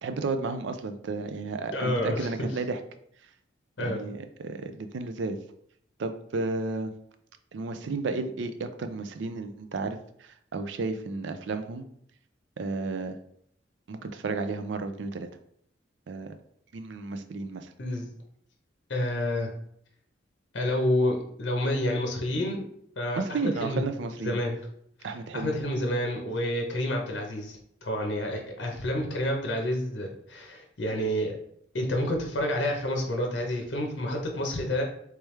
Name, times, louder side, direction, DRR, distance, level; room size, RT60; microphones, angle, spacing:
voice 1, 0.0-2.8 3.8-5.4 6.0-6.9 7.5-11.8 12.6-13.2 13.9-15.3 16.1-16.3 16.7-17.7 23.1-24.4 25.0-25.6, right 3 dB, 70° right, 8 dB, 0.4 m, -32 dB
voice 2, 1.7-2.3 3.8-4.0 17.8-18.1 18.9-19.5 20.5-22.6 23.0-23.8 24.2-24.6 25.0-31.4 31.7-34.8, left 1 dB, 65° left, 1 dB, 0.8 m, -29 dB
3.3 x 3.2 x 3.2 m, 0.69 s
head